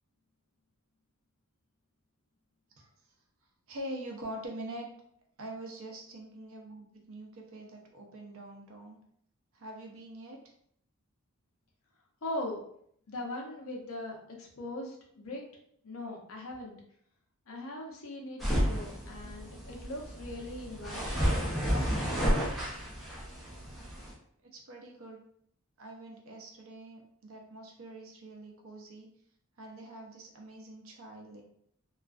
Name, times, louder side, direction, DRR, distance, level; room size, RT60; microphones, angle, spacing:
voice 1, 3.7-4.9 5.4-9.0 9.5-10.4 24.4-25.2 25.8-29.1 29.6-31.4, right 1 dB, 65° right, 1 dB, 0.6 m, -44 dB
voice 2, 12.2-12.6 13.1-15.4 15.8-16.7 17.5-21.4 21.7-22.5, left 1 dB, 70° left, 0 dB, 0.6 m, -40 dB
sound 1, 18.4-24.1, equal, ahead, 0.6 m, -31 dB
2.3 x 2.3 x 2.3 m, 0.67 s
head